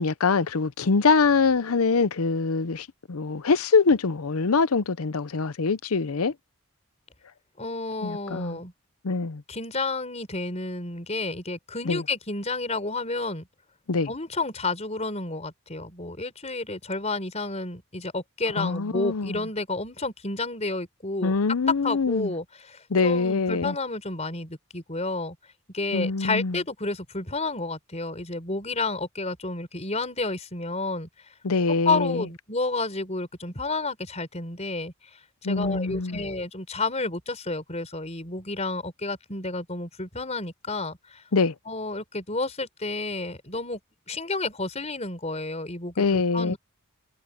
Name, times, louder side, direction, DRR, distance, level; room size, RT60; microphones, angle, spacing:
voice 1, 0.0-6.3 8.0-8.6 9.0-9.4 11.9-12.0 13.9-14.1 18.6-19.4 21.2-22.3 22.9-23.7 25.9-26.6 31.4-32.3 35.4-36.2 41.3-41.5 46.0-46.6, left 4 dB, 80° left, 0.7 m, -24 dB
voice 2, 7.6-8.7 9.5-13.5 14.1-21.3 21.8-25.4 25.7-31.1 31.8-34.9 35.4-41.2 41.7-43.8 44.1-46.6, left 3 dB, 30° left, 4.8 m, -31 dB
head